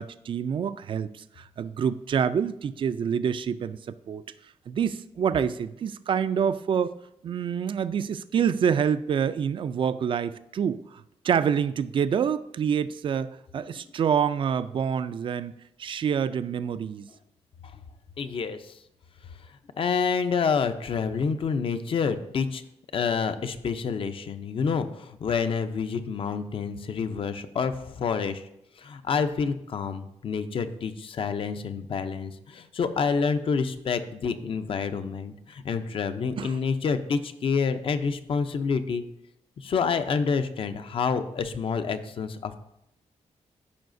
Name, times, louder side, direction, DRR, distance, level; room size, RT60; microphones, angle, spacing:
voice 1, 0.0-4.2 4.7-6.9 7.2-15.5 15.8-17.1 36.4-36.6, right 7 dB, 50° right, 14 dB, 0.4 m, -27 dB
voice 2, 18.2-18.7 19.8-22.6 22.9-28.4 28.8-39.0 39.6-42.6, left 5 dB, 50° left, 10 dB, 0.6 m, -28 dB
14.0 x 5.6 x 2.6 m, 0.82 s
wide cardioid pair, 150°, 11 cm